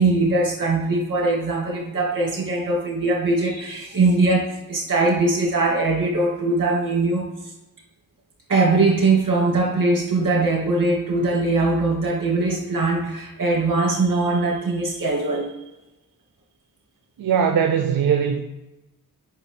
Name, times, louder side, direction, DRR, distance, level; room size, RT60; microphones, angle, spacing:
voice 1, 0.0-7.3 8.5-15.5, right 3 dB, 60° right, -2 dB, 2.4 m, -21 dB
voice 2, 17.2-18.4, right 7 dB, 75° right, 5 dB, 0.6 m, -20 dB
8.6 x 6.0 x 3.4 m, 0.99 s
cardioid pair, 70°, 36 cm